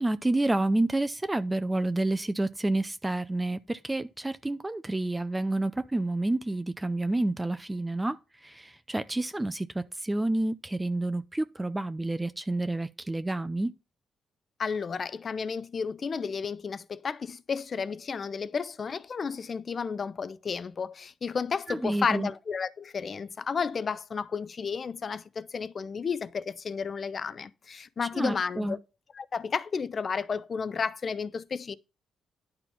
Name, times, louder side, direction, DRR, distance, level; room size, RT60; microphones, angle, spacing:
voice 1, 0.0-13.7 21.7-22.3 28.0-28.8, right 2 dB, 15° right, 0.6 m, -29 dB
voice 2, 14.6-28.8 29.1-31.8, left 5 dB, 40° left, 0.7 m, -32 dB
11.0 x 4.5 x 5.6 m
cardioid pair, 90°, 0 cm